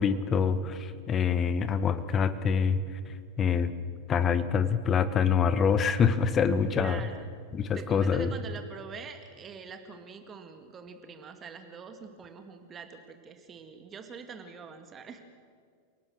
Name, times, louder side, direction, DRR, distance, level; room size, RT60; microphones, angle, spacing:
voice 1, 0.0-2.8 3.4-3.7 4.1-7.0 7.5-8.3, left 6 dB, 25° left, 12 dB, 1.4 m, -25 dB
voice 2, 6.7-7.3 7.7-15.2, right 5 dB, 25° right, 7 dB, 2.1 m, -44 dB
29.5 x 18.5 x 6.4 m, 2.1 s
figure-of-eight pair, 90°, 0 cm